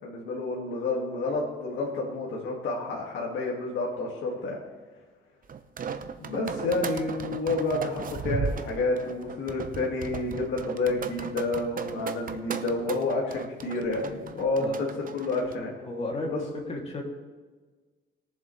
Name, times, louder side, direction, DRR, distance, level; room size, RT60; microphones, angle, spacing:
voice 1, 0.0-4.6 6.2-14.9 15.1-15.7 16.2-16.4, left 3 dB, 75° left, -3 dB, 2.3 m, -29 dB
sound 1, 5.5-15.6, right 6 dB, 45° right, 0.8 m, -36 dB
voice 2, 15.8-17.0, left 2 dB, 30° left, -1 dB, 2.9 m, -33 dB
21.0 x 7.4 x 3.3 m, 1.4 s
cardioid pair, 90°, 20 cm